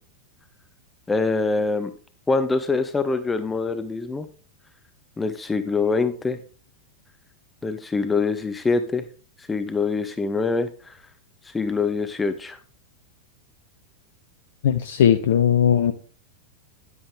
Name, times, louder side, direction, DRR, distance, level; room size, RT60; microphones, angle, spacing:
voice 1, 1.1-1.9 2.3-4.3 5.2-6.4 7.6-9.0 9.4-11.0 11.4-12.6, left 4 dB, 15° left, 10 dB, 0.7 m, -24 dB
voice 2, 14.6-15.9, left 9 dB, 60° left, 10 dB, 0.6 m, -18 dB
10.0 x 9.7 x 3.3 m, 0.38 s
figure-of-eight pair, 90°, 0 cm